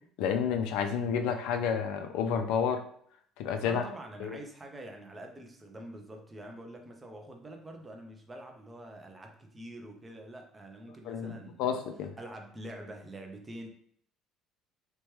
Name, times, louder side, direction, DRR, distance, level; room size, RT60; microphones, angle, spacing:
voice 1, 0.2-2.8 3.4-3.8 4.2-4.4 11.1-12.1, left 7 dB, 70° left, 6 dB, 0.3 m, -30 dB
voice 2, 3.6-11.8 12.2-13.7, right 1 dB, 15° right, 2 dB, 0.4 m, -46 dB
3.1 x 2.2 x 2.9 m, 0.62 s
cardioid pair, 175°, 0 cm